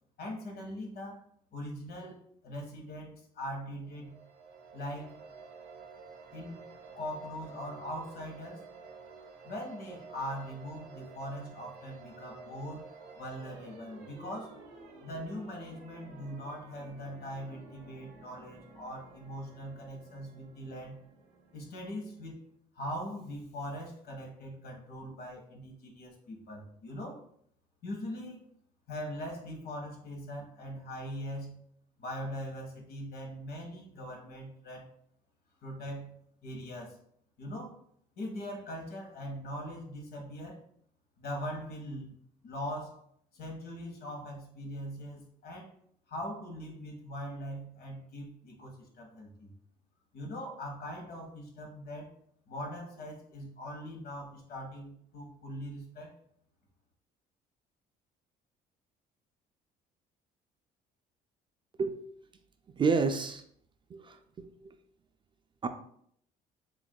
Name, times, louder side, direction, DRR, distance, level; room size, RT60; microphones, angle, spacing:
voice 1, 0.2-1.2 1.5-4.1 4.7-5.2 6.3-6.6 7.0-8.6 9.4-14.6 15.0-21.0 21.5-22.4 22.7-27.2 27.8-28.5 28.9-31.6 32.0-34.9 35.6-37.0 37.4-37.7 38.2-40.6 41.2-42.2 42.4-43.0 43.3-45.7 46.1-49.5 50.1-52.1 52.5-56.1, equal, 65° left, 0 dB, 1.4 m, -41 dB
sound 1, 3.8-22.4, right 4 dB, 85° right, 0.8 m, -52 dB
voice 2, 62.8-63.4 63.9-64.7 65.6-65.7, right 4 dB, 30° right, 8 dB, 0.3 m, -30 dB
7.0 x 2.6 x 2.2 m, 0.66 s
cardioid pair, 110°, 17 cm